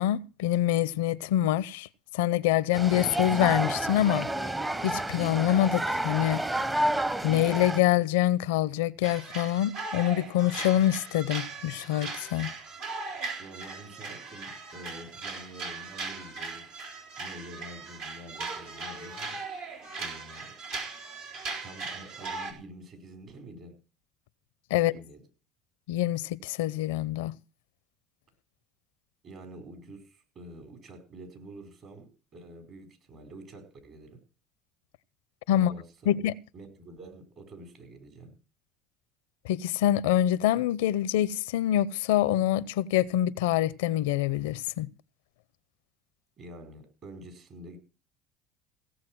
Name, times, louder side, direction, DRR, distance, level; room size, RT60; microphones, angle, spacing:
voice 1, 0.0-1.9 2.1-4.3 4.8-6.4 7.2-12.5 24.7-24.9 25.9-27.3 35.5-35.7 36.1-36.3 39.4-44.9, left 12 dB, 85° left, 0.5 m, -25 dB
sound 1, 2.7-7.8, right 1 dB, 15° right, 0.7 m, -30 dB
sound 2, 9.0-22.5, right 4 dB, 85° right, 4.0 m, -39 dB
voice 2, 13.4-16.7 17.2-19.4 20.0-20.5 21.6-23.8 24.7-25.2 29.2-34.2 35.5-36.1 36.5-38.4 46.4-47.8, right 1 dB, 55° right, 4.8 m, -47 dB
17.0 x 7.4 x 6.1 m
supercardioid pair, 85°, 0 cm